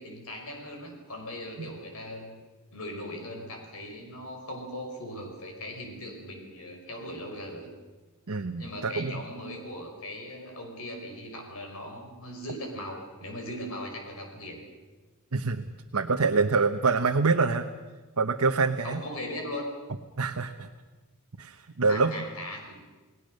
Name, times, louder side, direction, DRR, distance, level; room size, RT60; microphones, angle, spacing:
voice 1, 0.0-2.4 2.7-7.7 8.6-14.6 18.8-19.7 21.8-22.8, left 1 dB, 70° left, 3 dB, 5.6 m, -39 dB
voice 2, 8.3-9.2 15.3-17.7 18.2-19.0 20.2-20.7 21.4-22.2, right 4 dB, 70° right, 4 dB, 1.0 m, -26 dB
29.5 x 18.5 x 6.6 m, 1.3 s
head